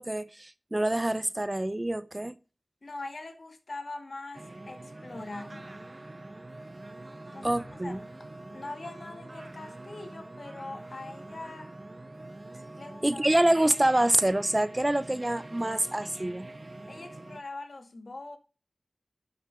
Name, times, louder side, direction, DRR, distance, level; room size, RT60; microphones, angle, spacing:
voice 1, 0.0-2.4 7.4-8.0 13.0-16.5, right 1 dB, 25° right, 0.7 m, -26 dB
voice 2, 2.8-5.7 7.3-8.0 8.5-11.7 12.7-13.3 16.9-18.4, left 2 dB, 65° left, 1.9 m, -42 dB
sound 1, 4.3-17.4, right 2 dB, 45° right, 1.0 m, -45 dB
sound 2, 7.4-9.6 9.9-10.0, left 1 dB, 90° left, 2.3 m, -53 dB
11.5 x 6.9 x 4.9 m
wide cardioid pair, 45°, 0 cm